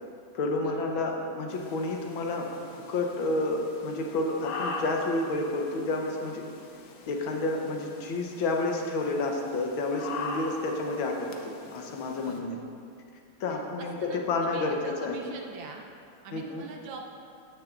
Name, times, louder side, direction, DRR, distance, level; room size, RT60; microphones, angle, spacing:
voice 1, 0.3-2.5 2.9-6.5 7.1-12.6 13.4-15.2 16.3-16.6, left 2 dB, 80° left, 1 dB, 1.8 m, -30 dB
sound 1, 1.5-12.4, left 3 dB, 65° left, 1.3 m, -42 dB
voice 2, 13.4-15.9 16.2-17.0, right 4 dB, 75° right, 2 dB, 1.6 m, -43 dB
13.5 x 9.5 x 2.5 m, 2.4 s
omnidirectional pair, 2.2 m